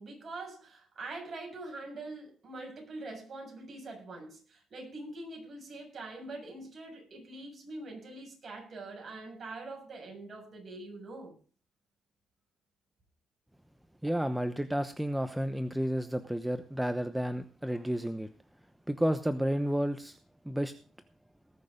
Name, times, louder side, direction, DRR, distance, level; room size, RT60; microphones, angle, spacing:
voice 1, 0.0-11.3, right 2 dB, 45° right, 6.9 m, -44 dB
voice 2, 14.0-18.3 18.9-20.2 20.4-20.7, equal, 5° right, 0.9 m, -31 dB
19.5 x 6.7 x 5.2 m
cardioid pair, 90°, 0 cm